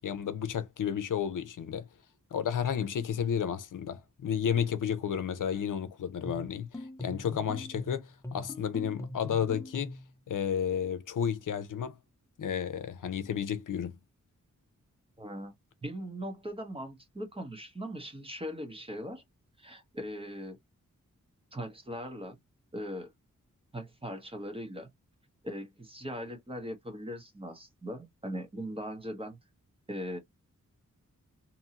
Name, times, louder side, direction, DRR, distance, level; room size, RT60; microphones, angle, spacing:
voice 1, 0.0-1.9 2.3-10.0 10.3-12.0 12.4-13.9, left 8 dB, 80° left, 0.6 m, -32 dB
sound 1, 6.2-10.1, left 1 dB, 10° left, 0.4 m, -41 dB
voice 2, 15.2-15.5 15.8-19.2 19.6-20.6 21.5-22.4 22.7-23.1 23.7-24.9 25.4-29.4 29.9-30.2, equal, 15° right, 0.9 m, -39 dB
2.7 x 2.6 x 2.7 m
wide cardioid pair, 145°, 31 cm